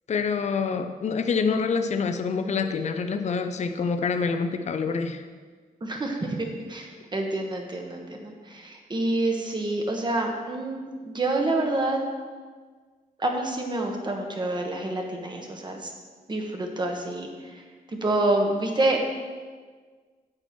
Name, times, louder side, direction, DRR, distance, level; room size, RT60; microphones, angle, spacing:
voice 1, 0.1-5.2, left 5 dB, 45° left, 7 dB, 0.6 m, -26 dB
voice 2, 5.8-12.0 13.2-15.9 16.3-17.6 17.9-19.0, right 2 dB, 30° right, 2 dB, 1.3 m, -27 dB
8.9 x 8.7 x 4.4 m, 1.5 s
wide cardioid pair, 155°, 16 cm